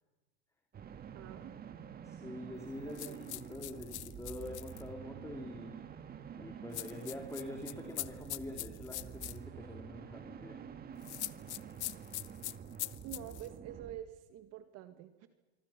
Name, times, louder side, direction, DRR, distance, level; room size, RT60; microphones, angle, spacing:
sound 1, 0.7-14.0, right 8 dB, 25° right, 1.8 m, -48 dB
voice 1, 1.1-1.6 2.9-3.2 13.0-15.3, right 11 dB, 45° right, 9 dB, 1.8 m, -47 dB
voice 2, 2.0-5.8 6.3-10.6, left 1 dB, 10° left, 2 dB, 3.5 m, -45 dB
sound 2, 3.0-4.8 6.7-9.4 11.0-13.5, left 16 dB, 75° left, 1.0 m, -42 dB
25.0 x 24.5 x 6.0 m, 1.2 s
hypercardioid pair, 105°, 34 cm